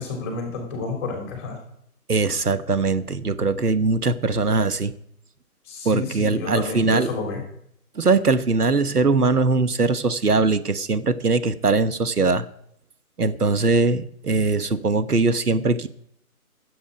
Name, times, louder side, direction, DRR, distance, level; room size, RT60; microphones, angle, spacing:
voice 1, 0.0-1.6 5.7-7.4, left 3 dB, 15° left, 1 dB, 3.1 m, -30 dB
voice 2, 2.1-4.9 5.8-7.1 8.0-12.5 13.2-15.9, right 3 dB, 80° right, 12 dB, 1.2 m, -21 dB
15.0 x 8.5 x 5.1 m, 0.70 s
figure-of-eight pair, 150°, 45 cm